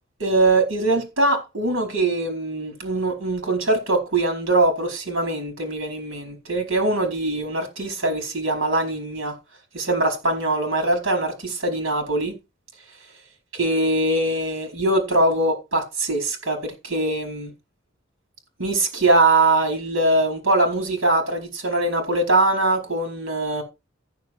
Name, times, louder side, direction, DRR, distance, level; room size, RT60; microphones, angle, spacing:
voice 1, 0.2-9.3 9.7-12.3 13.5-17.5 18.6-23.6, right 2 dB, 80° right, 4.6 m, -22 dB
14.5 x 7.1 x 4.7 m
head